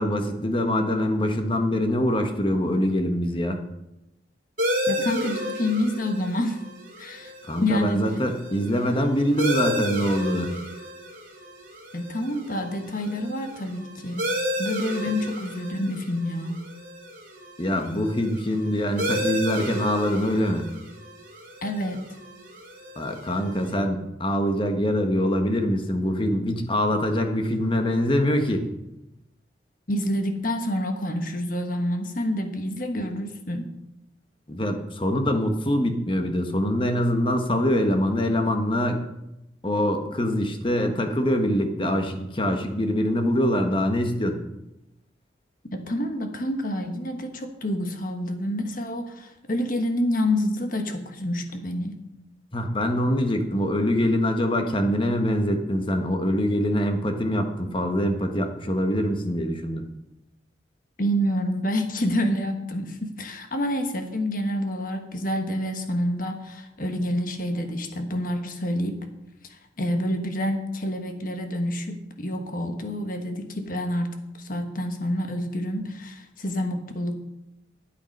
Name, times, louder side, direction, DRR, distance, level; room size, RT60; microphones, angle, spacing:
voice 1, 0.0-3.6 7.4-10.5 17.6-20.7 23.0-28.7 34.5-39.0 39.6-44.4 52.5-59.9, equal, 30° left, 6 dB, 1.2 m, -24 dB
sound 1, 4.6-23.7, equal, 50° right, 3.0 m, -33 dB
voice 2, 4.9-6.6 7.0-7.3 7.6-8.0 11.9-14.3 14.6-16.6 21.6-22.1 29.9-33.7 45.7-51.9 61.0-69.0 69.8-77.2, left 1 dB, 45° left, 5 dB, 1.4 m, -28 dB
12.5 x 8.4 x 5.4 m, 0.91 s
head